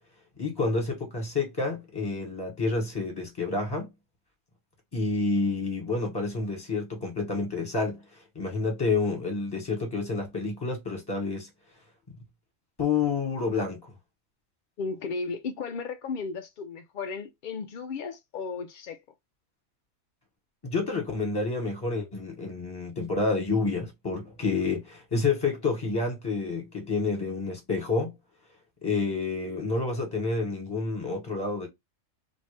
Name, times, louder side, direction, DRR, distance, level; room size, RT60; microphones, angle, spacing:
voice 1, 0.4-3.9 4.9-11.5 12.8-13.8 20.6-28.1 28.8-31.7, left 3 dB, 20° left, 1.3 m, -29 dB
voice 2, 14.8-19.0, left 4 dB, 80° left, 0.4 m, -35 dB
2.9 x 2.6 x 3.2 m
omnidirectional pair, 1.4 m